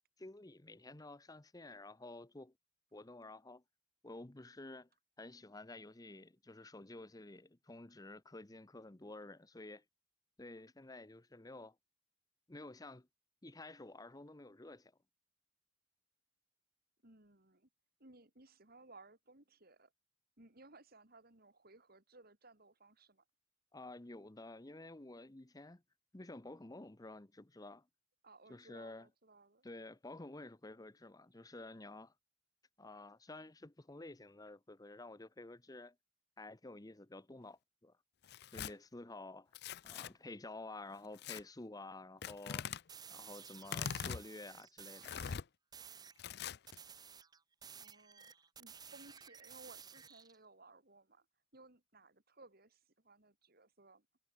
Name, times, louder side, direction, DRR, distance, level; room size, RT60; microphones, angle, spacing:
voice 1, 0.2-2.5 2.9-3.6 4.0-4.9 5.2-9.8 10.4-11.8 12.5-13.1 13.4-14.9 23.7-25.8 26.1-27.9 28.5-29.1 29.6-32.1 32.8-36.0 36.4-38.0 38.5-39.5 39.8-42.7 43.1-45.2, left 2 dB, 20° left, 0.8 m, -51 dB
voice 2, 17.0-17.7 18.0-19.9 20.4-23.2 28.2-29.7 47.8-48.3 48.6-51.2 51.5-54.0, right 2 dB, 50° right, 4.0 m, -61 dB
Tearing, 38.2-38.7 39.5-40.1 41.2-41.4 42.2-42.8 43.6-44.2 45.0-45.4 46.2-46.8, left 7 dB, 60° left, 0.5 m, -42 dB
sound 1, 42.9-45.4 45.7-46.2 46.7-50.4, right 7 dB, 20° right, 0.7 m, -54 dB
head